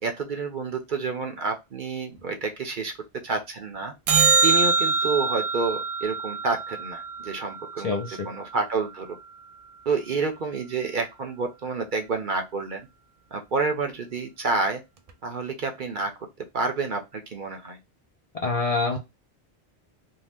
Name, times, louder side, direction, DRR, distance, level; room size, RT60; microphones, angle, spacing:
voice 1, 0.0-2.9 3.2-3.9 4.4-9.1 9.9-12.9 13.3-14.8 15.2-16.3 16.5-17.8, right 4 dB, 55° right, 4 dB, 0.7 m, -29 dB
sound 1, 4.1-8.5 15.1-15.2, right 4 dB, 70° right, 0.3 m, -24 dB
voice 2, 7.8-8.3 18.4-19.0, left 3 dB, 50° left, 1 dB, 0.4 m, -25 dB
2.7 x 2.2 x 3.3 m, 0.22 s
omnidirectional pair, 1.2 m